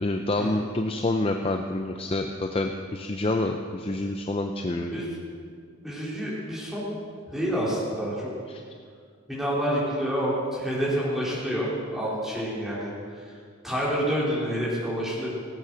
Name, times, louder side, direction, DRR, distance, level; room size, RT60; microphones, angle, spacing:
voice 1, 0.0-5.0 8.5-8.6, left 2 dB, 25° left, 4 dB, 0.5 m, -28 dB
voice 2, 5.8-7.0 7.3-8.3 9.3-13.3 13.6-15.3, equal, ahead, -8 dB, 3.8 m, -28 dB
17.0 x 8.5 x 6.2 m, 2.1 s
head